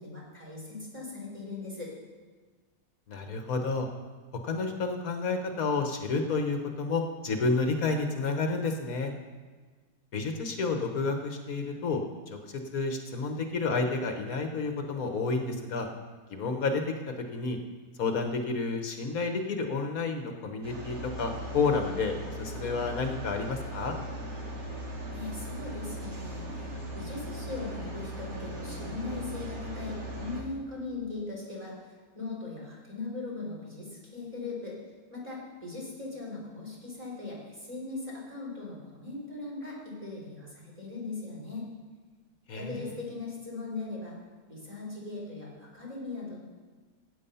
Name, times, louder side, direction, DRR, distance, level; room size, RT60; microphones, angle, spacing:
voice 1, 0.0-1.9 25.1-34.8 35.1-41.7 42.5-44.2 44.5-46.4, left 3 dB, 25° right, -4 dB, 3.8 m, -39 dB
voice 2, 3.1-3.9 4.4-9.1 10.1-15.9 16.3-17.6 18.0-23.9 42.5-42.7, left 4 dB, 70° left, 5 dB, 1.5 m, -30 dB
sound 1, 20.6-30.4, right 1 dB, 60° right, 2.5 m, -38 dB
16.0 x 8.4 x 5.5 m, 1.4 s
omnidirectional pair, 1.6 m